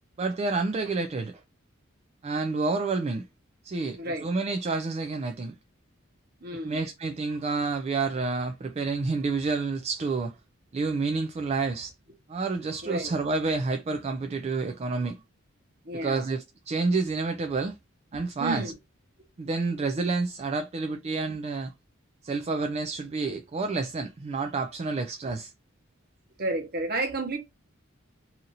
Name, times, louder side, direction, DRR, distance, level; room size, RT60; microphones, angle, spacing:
voice 1, 0.2-1.4 2.2-3.2 3.6-5.5 6.5-10.3 10.7-11.9 12.3-15.2 15.9-17.8 18.1-18.7 19.4-21.7 22.2-25.5, right 3 dB, 30° right, 0.3 m, -29 dB
voice 2, 3.8-4.3 6.4-6.8 12.8-13.1 15.8-16.3 18.4-18.7 25.2-25.3 26.4-27.4, right 2 dB, 50° right, 1.0 m, -31 dB
2.8 x 2.6 x 3.9 m
head